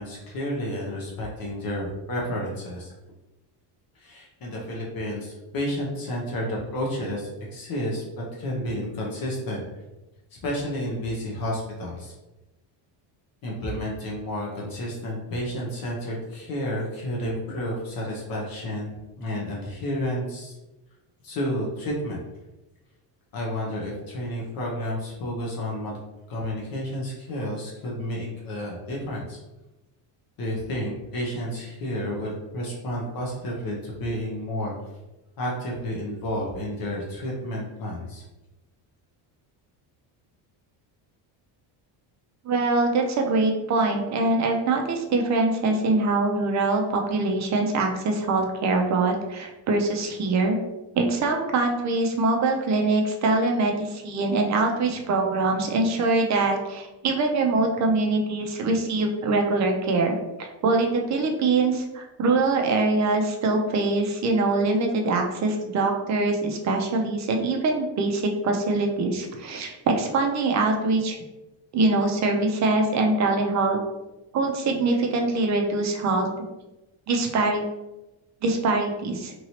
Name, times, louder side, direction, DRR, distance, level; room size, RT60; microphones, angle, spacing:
voice 1, 0.0-2.9 3.9-9.6 10.4-12.1 13.4-20.6 21.2-22.2 23.3-25.9 26.3-29.4 30.4-34.7 35.4-38.2, equal, 45° left, -3 dB, 0.8 m, -31 dB
voice 2, 42.4-50.6 51.0-71.2 71.7-73.8 74.3-76.3 77.1-77.6 78.4-79.3, right 3 dB, 40° right, 2 dB, 0.5 m, -23 dB
3.0 x 2.8 x 2.8 m, 1.0 s
cardioid pair, 135°, 47 cm